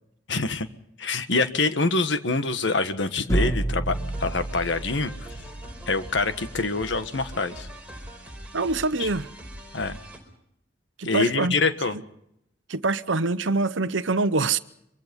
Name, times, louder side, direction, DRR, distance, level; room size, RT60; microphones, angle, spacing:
voice 1, 0.3-0.7 1.0-3.9 4.2-5.1 5.9-7.7 9.0-9.1 9.7-10.0 11.0-11.9, left 3 dB, 70° left, 1.5 m, -25 dB
sound 1, 3.3-7.2, right 1 dB, 15° left, 2.0 m, -30 dB
sound 2, 3.9-10.2, right 1 dB, 5° right, 4.5 m, -42 dB
voice 2, 8.5-9.3 11.0-11.6 11.9-12.0 12.7-14.6, right 3 dB, 80° right, 0.9 m, -25 dB
24.5 x 24.0 x 5.4 m
head